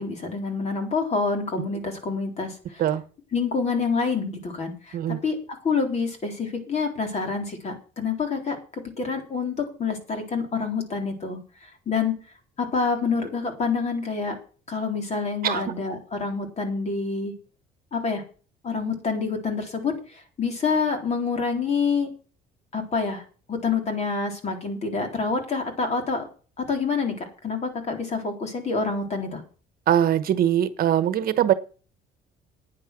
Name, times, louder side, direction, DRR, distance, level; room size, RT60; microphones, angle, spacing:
voice 1, 0.0-2.8 3.3-5.4 5.6-8.6 9.0-11.4 11.9-12.2 12.6-14.4 14.7-17.3 17.9-18.2 18.6-22.1 22.7-23.2 23.5-26.3 26.6-29.4, left 4 dB, 40° left, 4 dB, 3.8 m, -27 dB
voice 2, 29.9-31.5, right 10 dB, 60° right, 13 dB, 1.1 m, -21 dB
9.8 x 9.6 x 6.1 m, 0.38 s
cardioid pair, 110°, 17 cm